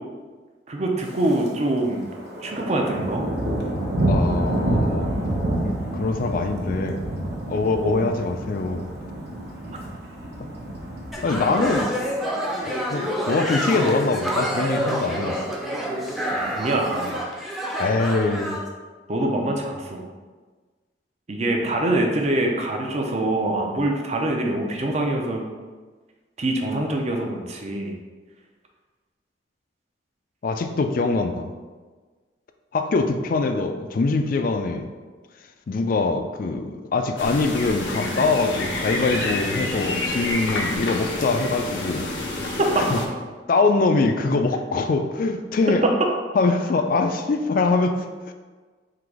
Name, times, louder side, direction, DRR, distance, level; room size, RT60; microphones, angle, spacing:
voice 1, 0.7-2.1 2.4-3.2 7.7-8.1 16.5-17.2 19.1-20.1 21.3-25.4 26.4-27.9 42.6-42.8, right 1 dB, 40° right, 1 dB, 0.6 m, -24 dB
Thunder, 1.0-1.5 1.8-12.2 12.6-12.9 13.4-13.8 14.1-14.2 14.3-14.4 14.8-15.4 16.2-17.1, right 1 dB, 60° right, 0.9 m, -28 dB
voice 2, 4.1-5.1 5.6-7.0 7.5-8.9 11.2-11.9 12.7-15.4 17.8-18.5 30.4-31.5 32.7-34.9 35.7-42.1 42.8-43.0 43.5-45.8 46.3-48.0 48.3-48.4, left 3 dB, 50° left, 7 dB, 0.4 m, -23 dB
sound 1, 11.1-18.6, equal, ahead, 0.6 m, -27 dB
sound 2, 37.2-43.1, left 2 dB, 90° left, 0.7 m, -28 dB
3.9 x 2.9 x 4.7 m, 1.4 s
head